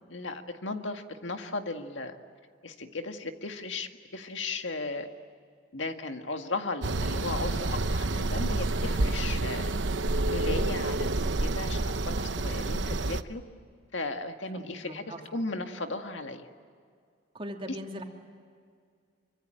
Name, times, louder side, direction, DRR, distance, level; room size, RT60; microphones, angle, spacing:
voice 1, 0.1-2.2 2.6-5.1 5.7-9.8 10.3-13.4 13.9-16.5, left 3 dB, 75° left, 6 dB, 1.9 m, -36 dB
sound 1, 6.8-13.2, right 2 dB, 70° right, 1.0 m, -29 dB
voice 2, 14.5-15.2 17.3-18.0, equal, 30° right, 2 dB, 2.9 m, -40 dB
25.0 x 25.0 x 8.9 m, 2.1 s
head